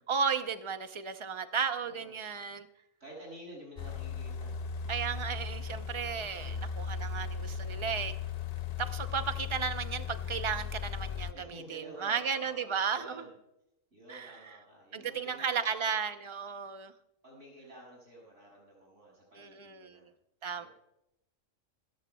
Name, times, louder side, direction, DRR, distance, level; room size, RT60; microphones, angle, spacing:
voice 1, 0.1-2.7 4.9-8.1 8.8-13.3 14.1-14.3 14.9-16.9 19.4-20.0 20.4-20.7, right 6 dB, 30° right, 9 dB, 0.7 m, -34 dB
voice 2, 1.8-2.4 3.0-4.6 6.3-6.7 11.3-13.3 13.9-16.0 17.2-20.1 20.6-20.7, right 1 dB, 65° right, -4 dB, 7.2 m, -51 dB
sound 1, 3.8-11.3, left 6 dB, 55° left, 0.4 m, -37 dB
26.0 x 14.0 x 2.3 m, 0.85 s
omnidirectional pair, 1.3 m